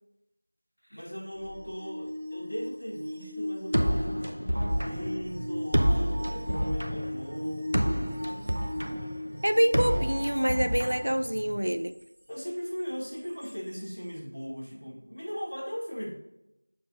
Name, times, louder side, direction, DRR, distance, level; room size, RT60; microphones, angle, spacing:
voice 1, 0.9-8.1 12.3-16.1, equal, 75° left, -1 dB, 1.9 m, -38 dB
sound 1, 1.3-11.1 13.4-13.5, left 1 dB, 20° right, 1.3 m, -38 dB
sound 2, 3.7-11.7, equal, 75° right, 0.7 m, -29 dB
voice 2, 9.4-11.9, equal, 40° right, 10 dB, 0.3 m, -26 dB
7.3 x 6.7 x 2.5 m, 0.88 s
figure-of-eight pair, 180°, 0 cm